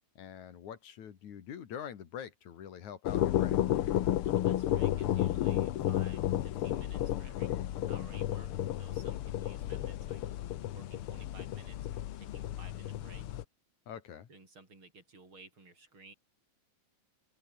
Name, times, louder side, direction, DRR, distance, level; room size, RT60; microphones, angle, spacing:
voice 1, 0.2-3.6 13.9-14.3, left 9 dB, 80° left, 3.5 m, -45 dB
sound 1, 3.0-13.4, left 12 dB, 65° left, 1.5 m, -32 dB
voice 2, 4.2-10.2 10.7-13.3 14.3-16.1, right 3 dB, 45° right, 7.5 m, -55 dB
open air
omnidirectional pair, 3.3 m